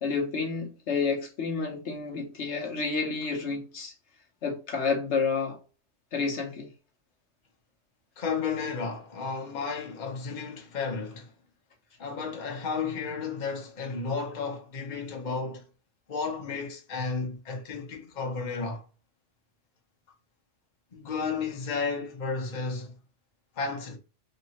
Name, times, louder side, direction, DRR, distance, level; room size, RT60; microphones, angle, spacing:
voice 1, 0.0-3.9 4.4-5.6 6.1-6.7, left 4 dB, 65° left, 1.0 m, -30 dB
voice 2, 8.2-11.3 12.0-15.6 16.1-18.8 20.9-23.0 23.6-24.0, left 4 dB, 40° left, 0.9 m, -33 dB
4.0 x 2.9 x 2.8 m
omnidirectional pair, 1.3 m